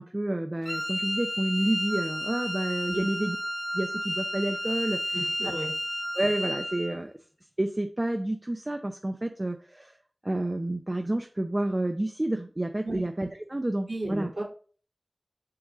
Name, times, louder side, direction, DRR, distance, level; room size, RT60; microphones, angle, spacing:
voice 1, 0.0-3.4 3.7-5.1 6.1-7.1 7.6-10.0 10.2-14.3, right 1 dB, 30° right, 5 dB, 0.6 m, -29 dB
Wind instrument woodwind instrument, 0.7-7.0, equal, 25° left, 0.6 m, -32 dB
voice 2, 5.1-5.7 12.8-13.0 13.9-14.4, right 1 dB, 70° right, -5 dB, 3.1 m, -34 dB
5.7 x 5.2 x 3.7 m, 0.41 s
wide cardioid pair, 50°, 0 cm